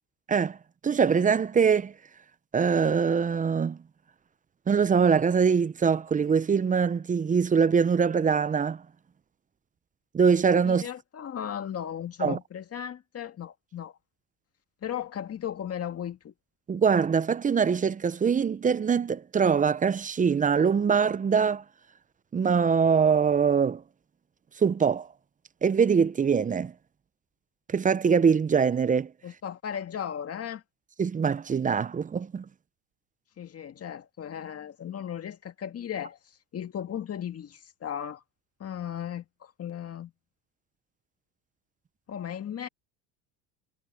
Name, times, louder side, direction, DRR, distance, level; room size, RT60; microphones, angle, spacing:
voice 1, 0.8-1.9 2.5-3.8 4.7-8.8 10.1-10.8 12.2-12.4 16.7-21.6 22.3-23.8 24.6-25.1 25.6-26.7 27.7-29.1 31.0-32.4, right 6 dB, 20° right, 0.6 m, -23 dB
voice 2, 10.6-14.0 14.8-16.3 29.2-30.6 33.4-38.2 38.6-40.1 42.1-42.7, left 9 dB, 35° left, 2.0 m, -36 dB
supercardioid pair, 100°, 41 cm